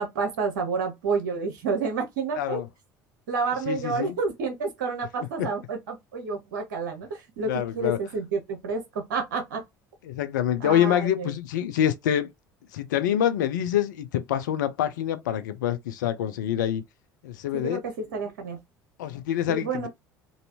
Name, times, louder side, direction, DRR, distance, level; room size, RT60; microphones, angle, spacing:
voice 1, 0.0-2.6 3.3-9.6 10.6-11.3 17.5-18.6 19.5-19.9, right 4 dB, 75° right, 0.9 m, -29 dB
voice 2, 2.4-2.7 3.7-4.2 5.4-5.5 7.4-8.0 10.0-12.3 12.7-16.8 17.2-17.8 19.0-19.9, left 10 dB, 75° left, 0.5 m, -26 dB
3.1 x 2.7 x 2.7 m
hypercardioid pair, 65°, 10 cm